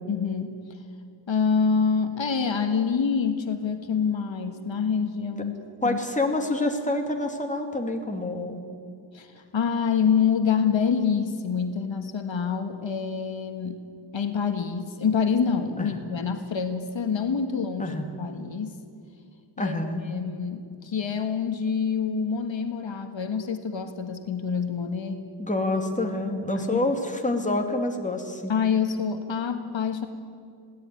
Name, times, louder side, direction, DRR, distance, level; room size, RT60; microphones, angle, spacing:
voice 1, 0.1-0.6 1.3-5.6 5.8-6.0 9.1-13.8 14.1-18.8 19.6-19.8 20.0-25.3 26.5-26.9 28.5-30.1, left 6 dB, 70° left, 7 dB, 1.5 m, -26 dB
voice 2, 5.8-8.6 15.8-15.9 17.8-18.0 19.6-20.1 25.4-28.5, left 2 dB, 15° left, 3 dB, 2.6 m, -27 dB
21.5 x 17.0 x 9.7 m, 2.4 s
wide cardioid pair, 110°, 47 cm